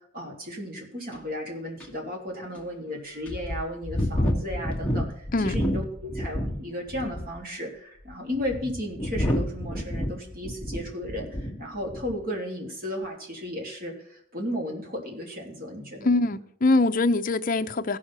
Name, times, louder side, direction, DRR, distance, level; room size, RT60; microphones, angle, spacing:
voice 1, 0.1-16.1, equal, 50° right, 3.2 m, -34 dB
sound 1, 1.1-1.2 1.8-1.9 2.5-2.6 3.3-6.6 6.9-7.4 8.1-11.6 11.9-12.2, equal, 5° left, 1.6 m, -29 dB
voice 2, 16.0-18.0, left 2 dB, 45° left, 0.6 m, -23 dB
16.0 x 6.4 x 4.3 m
head